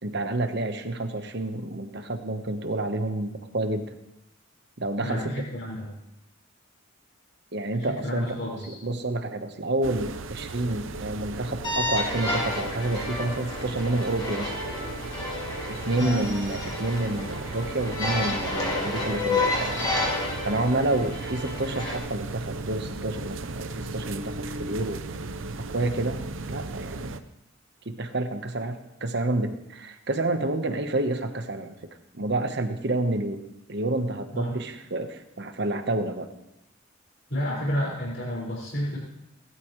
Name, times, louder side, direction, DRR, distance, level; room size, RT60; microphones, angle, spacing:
voice 1, 0.0-3.9 4.8-5.3 7.5-8.3 8.7-14.5 15.6-19.9 20.4-25.0 25.6-27.2 27.8-31.7 32.1-33.4 33.7-36.3, right 2 dB, 55° right, 7 dB, 1.2 m, -29 dB
voice 2, 5.0-6.0 7.8-8.8 16.0-16.3 34.3-34.6 37.3-39.0, equal, 60° left, -6 dB, 5.4 m, -31 dB
sound 1, 9.8-27.2, right 3 dB, 75° right, 0.8 m, -36 dB
sound 2, 11.6-22.0, left 2 dB, 20° left, 2.6 m, -30 dB
19.0 x 12.5 x 3.2 m, 0.88 s
head